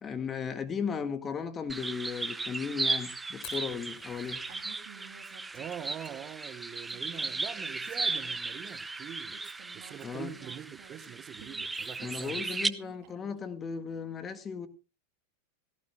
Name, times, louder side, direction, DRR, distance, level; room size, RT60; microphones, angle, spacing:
voice 1, 0.0-4.4 10.0-10.3 12.0-14.7, left 6 dB, 25° left, 1.8 m, -36 dB
sound 1, 1.7-12.7, right 3 dB, 10° right, 0.7 m, -36 dB
Fire, 3.4-13.1, left 9 dB, 45° left, 3.6 m, -57 dB
Female speech woman speaking, 4.5-6.4 6.8-8.8 9.3-13.4, right 9 dB, 55° right, 3.1 m, -54 dB
voice 2, 5.5-9.4 9.7-12.6, right 9 dB, 35° right, 1.0 m, -44 dB
17.5 x 16.0 x 2.3 m
hypercardioid pair, 105°, 0 cm